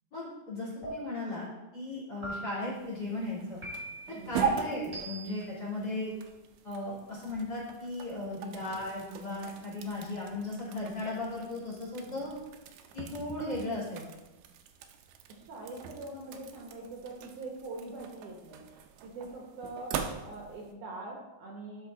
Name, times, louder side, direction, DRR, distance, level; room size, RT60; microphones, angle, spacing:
voice 1, 0.1-1.5 1.7-3.6 4.1-6.1 6.6-12.3 12.9-14.0, left 2 dB, 30° left, -6 dB, 2.9 m, -36 dB
sound 1, 0.8-1.4 2.2-2.8 3.6-4.2 4.9-5.5, right 1 dB, 10° right, 2.6 m, -41 dB
sound 2, 2.7-20.7, right 6 dB, 85° right, 2.6 m, -41 dB
voice 2, 4.1-4.5 8.2-8.5 12.0-12.2 15.3-18.7 19.0-21.9, right 2 dB, 65° right, -1 dB, 2.3 m, -43 dB
11.5 x 5.6 x 3.9 m, 1.1 s
omnidirectional pair, 4.3 m